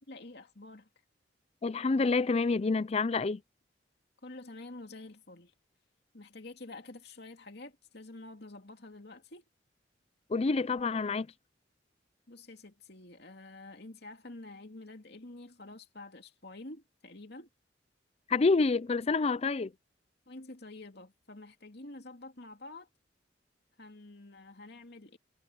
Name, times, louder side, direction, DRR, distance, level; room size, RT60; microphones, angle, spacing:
voice 1, 0.1-0.9 4.2-5.5 6.1-9.4 12.3-17.5 20.3-22.9 23.8-25.2, left 2 dB, 65° left, 2.7 m, -48 dB
voice 2, 1.6-3.4 10.3-11.3 18.3-19.7, left 4 dB, 35° left, 0.4 m, -28 dB
head